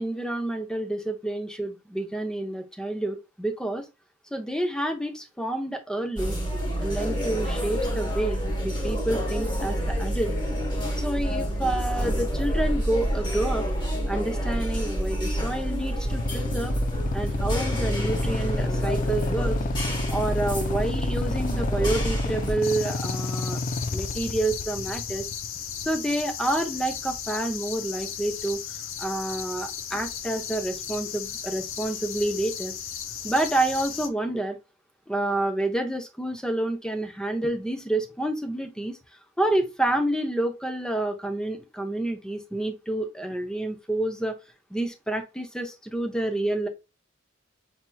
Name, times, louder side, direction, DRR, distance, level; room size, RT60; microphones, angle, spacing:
voice 1, 0.0-3.8 4.3-6.4 6.8-10.6 11.0-13.7 14.1-16.7 17.1-19.6 20.1-23.6 23.9-25.3 25.8-28.6 29.0-32.7 33.2-34.6 35.1-39.0 39.4-44.3 44.7-46.7, right 1 dB, 5° left, 5 dB, 0.7 m, -28 dB
sound 1, 6.2-22.5, equal, 25° left, 1.3 m, -28 dB
Motorcycle / Idling, 16.0-26.0, left 3 dB, 40° left, 0.3 m, -31 dB
sound 2, 22.6-34.1, left 8 dB, 80° left, 0.6 m, -36 dB
5.6 x 2.9 x 2.2 m, 0.26 s
head